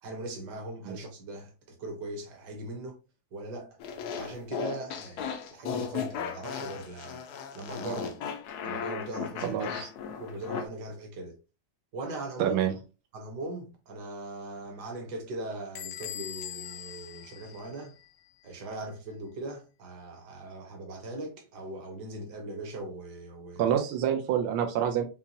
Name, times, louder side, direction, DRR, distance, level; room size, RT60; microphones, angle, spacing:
voice 1, 0.0-3.0 3.3-3.8 4.2-7.2 7.5-8.2 8.6-9.8 10.2-11.3 11.9-12.6 13.1-17.9 18.4-23.7, right 2 dB, 60° right, 1.7 m, -39 dB
sound 1, 3.8-10.7, left 7 dB, 70° left, 0.9 m, -36 dB
voice 2, 9.4-9.9 12.4-12.7 23.6-25.0, right 9 dB, 90° right, 1.5 m, -27 dB
Bell / Squeak, 15.8-18.3, left 12 dB, 90° left, 1.5 m, -42 dB
5.5 x 2.3 x 2.8 m
omnidirectional pair, 2.2 m